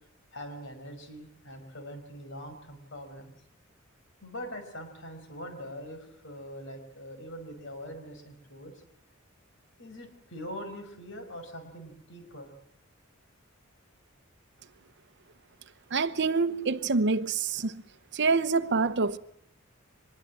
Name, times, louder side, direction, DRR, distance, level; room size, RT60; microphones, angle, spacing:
voice 1, 0.3-3.3 4.2-8.7 9.8-12.5, equal, 65° left, 5.6 m, -43 dB
voice 2, 15.9-17.8 18.1-19.2, right 4 dB, 55° right, 0.9 m, -26 dB
24.5 x 21.5 x 7.7 m
head